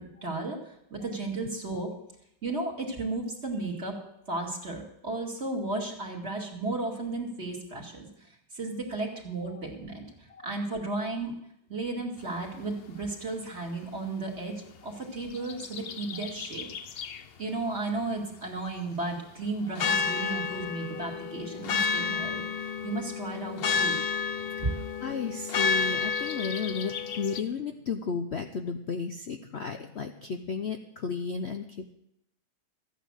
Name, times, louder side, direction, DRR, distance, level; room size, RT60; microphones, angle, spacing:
voice 1, 0.0-1.9 2.4-4.0 4.3-8.1 8.5-10.0 10.4-11.3 11.7-16.7 16.9-17.1 17.4-24.0 24.6-24.7, right 2 dB, 35° right, -1 dB, 2.8 m, -34 dB
sound 1, 15.2-17.2 19.8-27.4, left 5 dB, 80° left, 0.5 m, -31 dB
voice 2, 25.0-31.9, left 5 dB, 50° left, 5 dB, 0.8 m, -33 dB
14.5 x 9.3 x 6.4 m, 0.78 s
omnidirectional pair, 1.9 m